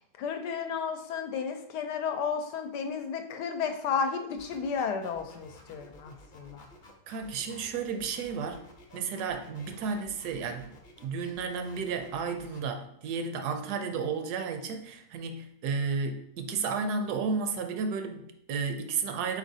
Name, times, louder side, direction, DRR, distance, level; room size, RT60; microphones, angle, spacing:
voice 1, 0.0-6.7, left 6 dB, 80° left, 6 dB, 1.2 m, -33 dB
sound 1, 4.4-12.6, left 2 dB, 40° left, 0.7 m, -53 dB
voice 2, 7.1-8.6 8.9-10.7 11.0-19.4, right 5 dB, 75° right, 6 dB, 1.0 m, -32 dB
4.7 x 4.0 x 2.7 m, 0.72 s
omnidirectional pair, 1.8 m